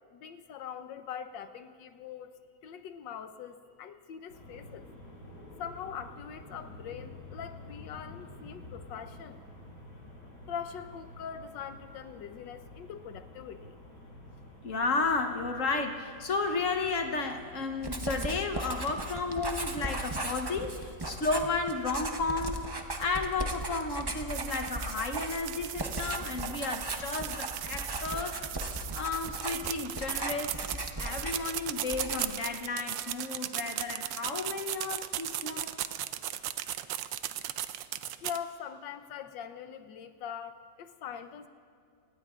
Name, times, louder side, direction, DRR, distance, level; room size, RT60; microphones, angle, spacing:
voice 1, 0.1-2.4 2.6-4.9 5.6-9.4 10.5-13.7 38.2-41.5, left 8 dB, 90° left, 9 dB, 1.5 m, -42 dB
sound 1, 4.3-21.6, left 2 dB, 70° left, 4.1 m, -50 dB
voice 2, 14.6-28.4 28.9-30.6 31.0-35.7, left 3 dB, 55° left, 5 dB, 1.2 m, -33 dB
Writing, 17.8-31.6 31.9-32.5, right 1 dB, 30° right, 0.4 m, -37 dB
sound 2, 24.3-38.4, right 13 dB, 85° right, 1.3 m, -37 dB
25.0 x 18.5 x 2.5 m, 2.4 s
omnidirectional pair, 1.9 m